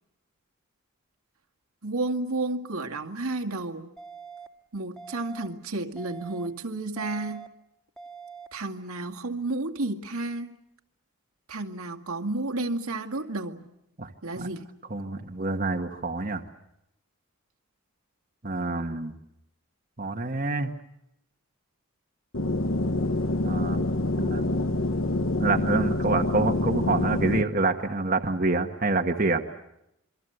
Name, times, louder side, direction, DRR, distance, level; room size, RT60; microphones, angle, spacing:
voice 1, 1.8-3.9 4.7-7.5 8.5-10.6 11.5-13.7 14.2-14.7, right 2 dB, 80° right, 4 dB, 2.2 m, -31 dB
sound 1, 4.0-4.5 5.0-5.5 6.0-6.5 7.0-7.5 8.0-8.5, right 5 dB, ahead, 2.1 m, -43 dB
voice 2, 14.9-16.4 18.4-19.1 20.0-20.7 23.4-23.8 24.2-24.4 25.4-29.4, right 3 dB, 40° right, 3 dB, 1.4 m, -27 dB
sound 2, 22.3-27.4, left 2 dB, 65° left, 1.5 m, -26 dB
28.0 x 23.5 x 8.0 m, 0.82 s
head